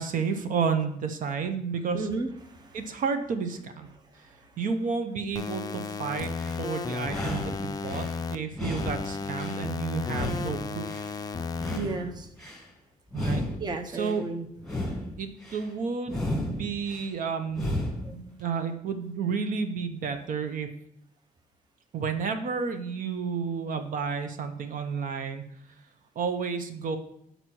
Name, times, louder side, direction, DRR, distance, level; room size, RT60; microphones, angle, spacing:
voice 1, 0.0-2.1 2.7-3.9 4.6-6.3 6.6-10.9 13.1-13.4 13.9-14.3 15.2-20.7 21.9-25.4 26.2-27.0, right 5 dB, 65° right, 8 dB, 0.7 m, -31 dB
voice 2, 1.9-2.8 11.7-12.3 13.6-14.5 18.0-18.1, right 3 dB, 30° right, 6 dB, 0.7 m, -33 dB
sound 1, 5.3-8.3 8.8-11.8, left 4 dB, 25° left, 0.4 m, -34 dB
sound 2, 6.2-6.7 7.0-8.1 8.5-9.7 10.0-11.1 11.5-12.6 13.1-14.2 14.6-15.6 16.1-17.1 17.5-18.1, left 1 dB, ahead, 1.5 m, -33 dB
6.1 x 4.0 x 6.1 m, 0.72 s
cardioid pair, 135°, 15 cm